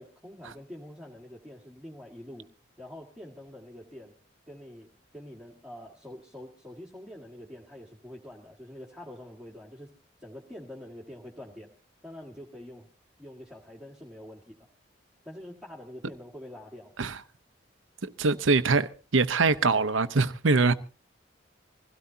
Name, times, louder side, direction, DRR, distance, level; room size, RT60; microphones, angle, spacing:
voice 1, 0.0-2.5 2.8-4.1 4.5-9.9 10.2-11.7 12.0-12.9 13.2-14.7 15.2-16.9, left 1 dB, 5° right, 1.8 m, -45 dB
voice 2, 18.0-20.7, right 3 dB, 85° right, 0.8 m, -23 dB
24.0 x 16.5 x 2.8 m
head